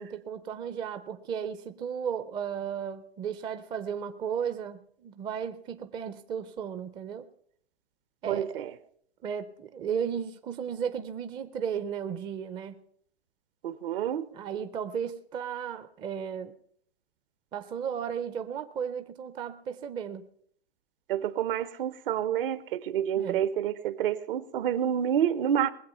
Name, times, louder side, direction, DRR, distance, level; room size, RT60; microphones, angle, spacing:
voice 1, 0.0-7.3 8.2-8.6 9.2-12.8 14.3-16.5 17.5-20.3 23.2-23.4, right 7 dB, 15° right, 11 dB, 0.4 m, -34 dB
voice 2, 8.3-8.7 13.6-14.3 21.1-25.7, right 9 dB, 60° right, 16 dB, 0.9 m, -28 dB
20.5 x 7.7 x 5.5 m, 0.63 s
hypercardioid pair, 135°, 31 cm